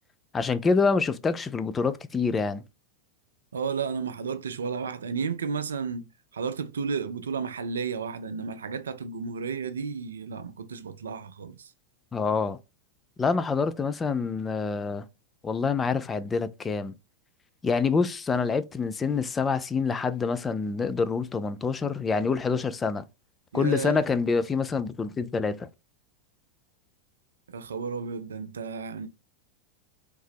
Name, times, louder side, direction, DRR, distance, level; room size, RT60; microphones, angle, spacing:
voice 1, 0.3-2.6 12.1-12.6 13.2-15.0 15.4-16.9 17.6-23.0 23.5-25.7, left 5 dB, 15° left, 0.3 m, -26 dB
voice 2, 3.5-6.1 6.3-11.7 23.5-24.1 27.5-29.1, right 5 dB, 70° right, 0.4 m, -32 dB
3.2 x 2.7 x 3.4 m
figure-of-eight pair, 90°, 0 cm